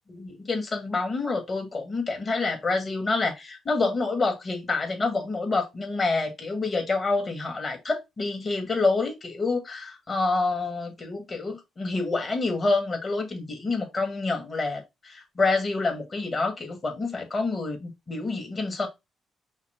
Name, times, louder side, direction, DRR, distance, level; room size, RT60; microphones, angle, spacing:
voice 1, 0.1-18.9, left 3 dB, 35° left, 1.8 m, -27 dB
5.7 x 2.1 x 4.5 m
cardioid pair, 90°, 0 cm